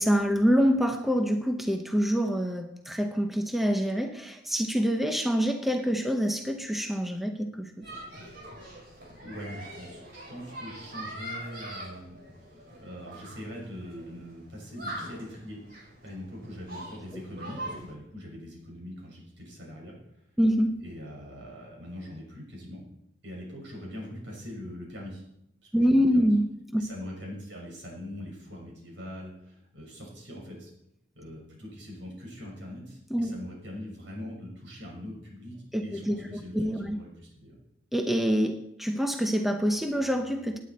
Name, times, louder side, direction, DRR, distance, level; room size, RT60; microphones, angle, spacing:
voice 1, 0.0-7.9 20.4-20.8 25.7-26.5 26.7-26.9 33.1-33.3 35.7-37.0 37.9-40.6, equal, ahead, 5 dB, 0.8 m, -26 dB
sound 1, 7.8-17.9, right 1 dB, 55° right, 5.1 m, -43 dB
voice 2, 9.2-12.2 12.5-15.6 16.0-19.9 20.8-22.8 23.2-25.2 25.7-26.3 26.8-30.7 31.1-35.5 35.8-37.6, left 1 dB, 75° right, -2 dB, 6.1 m, -42 dB
17.5 x 9.7 x 4.3 m, 0.77 s
head